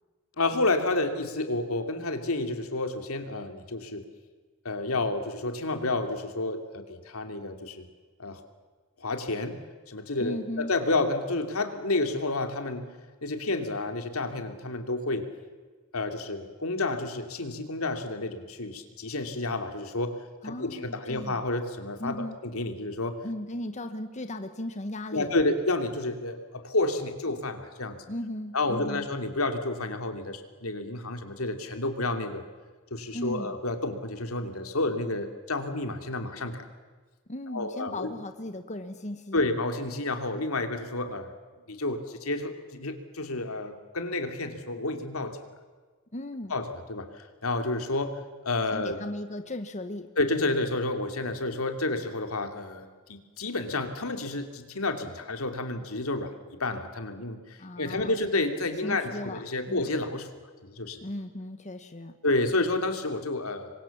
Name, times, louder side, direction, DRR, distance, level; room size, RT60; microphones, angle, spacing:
voice 1, 0.4-4.0 4.6-7.9 8.2-8.4 9.0-9.6 9.9-12.8 13.2-15.3 15.9-20.1 20.4-23.2 25.1-28.0 28.5-32.4 32.9-36.6 37.5-38.1 39.3-41.3 41.7-45.4 46.5-49.0 50.2-56.3 56.6-57.4 57.8-60.3 60.6-61.0 62.2-63.7, left 2 dB, 85° left, 6 dB, 2.8 m, -30 dB
voice 2, 10.2-10.7 20.4-21.4 22.0-22.4 23.2-25.4 28.1-29.1 33.1-33.6 37.3-39.4 46.1-46.6 48.7-50.1 57.6-58.2 58.8-59.9 61.0-62.2, left 1 dB, 35° left, 8 dB, 1.2 m, -36 dB
27.5 x 23.0 x 7.3 m, 1.4 s
head